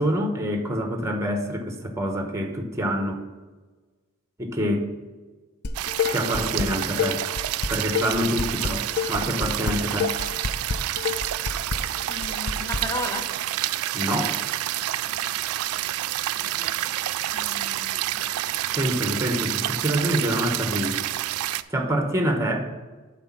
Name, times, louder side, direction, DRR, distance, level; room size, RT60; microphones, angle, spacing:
voice 1, 0.0-3.2 4.4-4.9 6.1-7.2 7.7-10.1 13.9-14.4 18.7-21.0 21.7-22.7, equal, 15° right, 4 dB, 0.9 m, -26 dB
Dishes pots and pans, 5.6-6.7 7.0-12.8, left 6 dB, 50° left, 0.4 m, -28 dB
sound 1, 5.7-21.6, right 14 dB, 80° right, 0.3 m, -28 dB
voice 2, 6.2-6.7 12.1-13.3 16.4-16.9 17.3-18.2, left 2 dB, 15° left, 5 dB, 0.7 m, -36 dB
7.8 x 4.1 x 5.8 m, 1.3 s
head